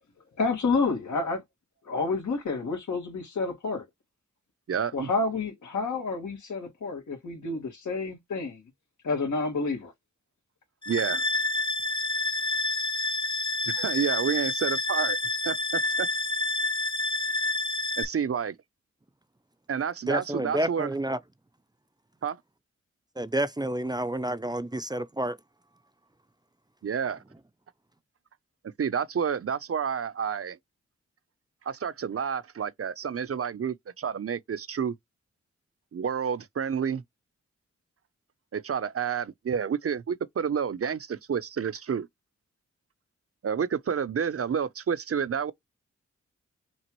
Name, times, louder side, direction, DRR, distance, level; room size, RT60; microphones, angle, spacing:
voice 1, 0.4-1.4 1.9-3.8 4.9-8.6 9.0-9.9, left 3 dB, 80° left, 2.0 m, -29 dB
voice 2, 4.7-5.1 10.9-11.2 13.6-15.2 15.4-16.1 18.0-18.6 19.7-20.9 22.2-22.4 26.8-27.2 28.8-30.6 31.7-34.9 35.9-37.0 38.5-42.1 43.4-45.5, right 7 dB, 50° right, 0.6 m, -29 dB
sound 1, 10.8-18.0, left 2 dB, 15° left, 0.9 m, -28 dB
voice 3, 20.1-21.2 23.1-25.4, right 1 dB, 15° right, 0.6 m, -29 dB
6.0 x 2.5 x 3.0 m
cardioid pair, 45°, 29 cm